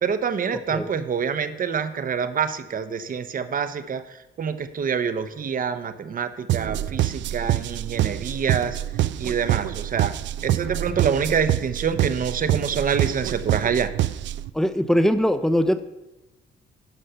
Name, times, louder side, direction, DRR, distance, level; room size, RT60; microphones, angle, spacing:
voice 1, 0.0-8.8 9.2-10.1 10.4-13.9, right 6 dB, 45° right, 11 dB, 0.8 m, -26 dB
sound 1, 6.5-14.5, right 13 dB, 70° right, 0.4 m, -26 dB
voice 2, 14.5-15.8, equal, ahead, 10 dB, 0.7 m, -21 dB
12.0 x 5.3 x 5.6 m, 0.99 s
cardioid pair, 90°, 20 cm